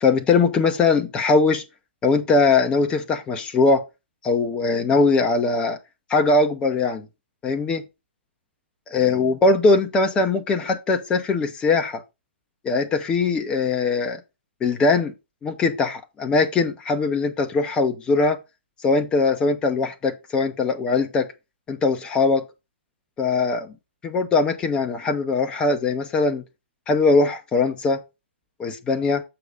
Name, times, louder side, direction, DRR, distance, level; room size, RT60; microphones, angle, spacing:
voice 1, 0.0-1.6 2.0-3.8 4.2-5.8 6.1-7.1 7.4-7.8 8.9-12.0 12.6-14.2 14.6-15.1 15.4-18.4 18.8-21.3 21.7-22.5 23.2-23.7 24.0-26.4 26.9-28.0 28.6-29.2, left 3 dB, 15° left, 0.8 m, -21 dB
7.7 x 4.8 x 3.9 m
figure-of-eight pair, 120°, 7 cm